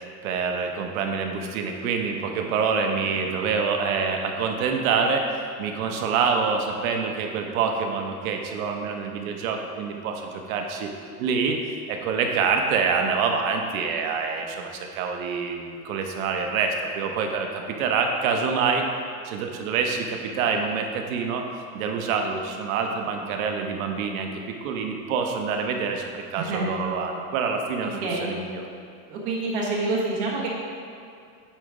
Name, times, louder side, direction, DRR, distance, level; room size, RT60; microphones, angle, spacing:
voice 1, 0.2-10.9 11.2-11.6 11.9-18.8 19.2-21.4 21.7-27.9 28.2-28.7, right 5 dB, 60° right, 3 dB, 0.9 m, -26 dB
voice 2, 26.4-26.7 28.0-28.3 29.1-30.5, right 3 dB, 40° right, -4 dB, 1.5 m, -27 dB
9.0 x 4.1 x 4.8 m, 2.4 s
supercardioid pair, 180°, 47 cm